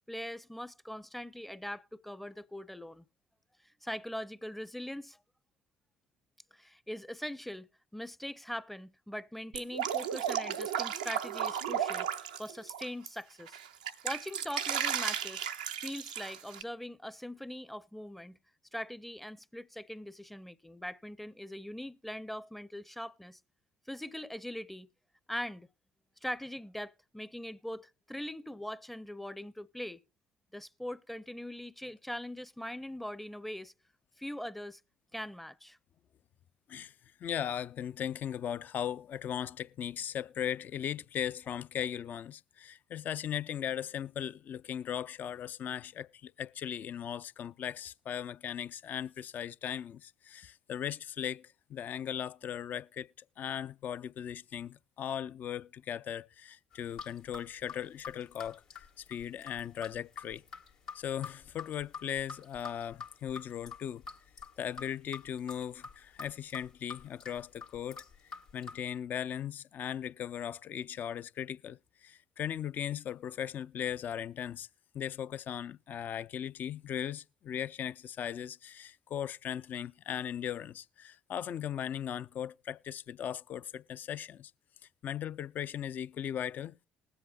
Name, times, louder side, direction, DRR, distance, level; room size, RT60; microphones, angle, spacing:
voice 1, 0.1-3.0 3.8-5.2 6.5-13.6 14.0-15.5 15.8-18.4 18.7-23.4 23.9-24.9 25.3-25.7 26.2-30.0 30.5-33.7 34.2-34.8 35.1-35.8, left 1 dB, 5° left, 0.6 m, -41 dB
Drip, 9.5-13.1 13.5-16.6, right 9 dB, 85° right, 0.5 m, -34 dB
voice 2, 37.2-53.1 53.4-58.6 59.0-60.4 60.9-64.0 64.6-68.0 68.5-74.7 74.9-84.5 85.0-86.8, left 9 dB, 50° left, 0.4 m, -38 dB
sound 1, 56.7-68.8, left 5 dB, 80° left, 1.7 m, -47 dB
20.5 x 7.9 x 2.4 m
hypercardioid pair, 50°, 4 cm